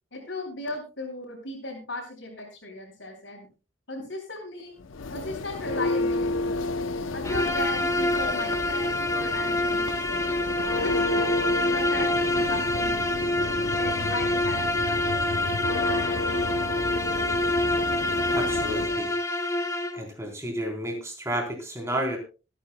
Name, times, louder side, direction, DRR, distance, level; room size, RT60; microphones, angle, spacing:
voice 1, 0.1-3.5 3.9-4.8 5.1-6.6 7.1-10.0 10.8-11.3 11.7-13.1 13.8-15.3, left 2 dB, 75° left, -6 dB, 5.0 m, -37 dB
Church bell, 4.8-19.1, left 3 dB, 90° left, 0.7 m, -31 dB
Bowed string instrument, 7.2-20.0, left 1 dB, 15° left, 1.0 m, -26 dB
voice 2, 18.3-19.2 19.9-22.2, right 1 dB, 15° right, 1 dB, 3.7 m, -31 dB
25.5 x 10.0 x 2.2 m, 0.33 s
head